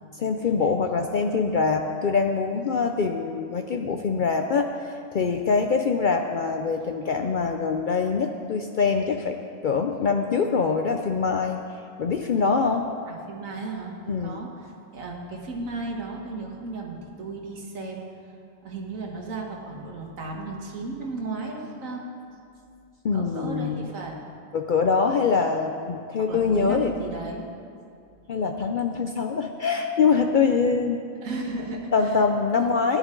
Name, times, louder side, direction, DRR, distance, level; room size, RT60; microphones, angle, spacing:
voice 1, 0.2-4.7 5.1-9.4 9.6-11.6 12.0-12.8 14.1-14.4 23.0-23.9 24.5-26.9 28.3-31.0 31.9-33.0, left 5 dB, 70° left, 5 dB, 0.4 m, -24 dB
voice 2, 13.1-18.1 18.6-22.1 23.1-24.2 26.2-27.5 31.2-32.3 32.5-32.9, right 3 dB, 70° right, -1 dB, 1.8 m, -35 dB
15.0 x 10.5 x 3.8 m, 2.4 s
omnidirectional pair, 1.4 m